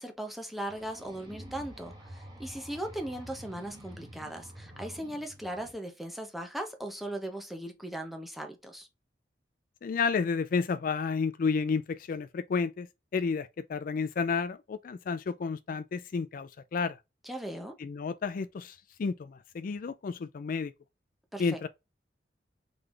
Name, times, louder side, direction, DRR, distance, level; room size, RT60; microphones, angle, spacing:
voice 1, 0.0-8.9 17.2-17.8 21.3-21.6, right 1 dB, ahead, 0.8 m, -38 dB
sound 1, 0.7-5.7, right 1 dB, 25° right, 1.4 m, -48 dB
voice 2, 9.8-12.9 13.1-17.0 17.8-20.7 21.4-21.7, left 5 dB, 50° left, 0.3 m, -31 dB
3.9 x 3.3 x 3.1 m
head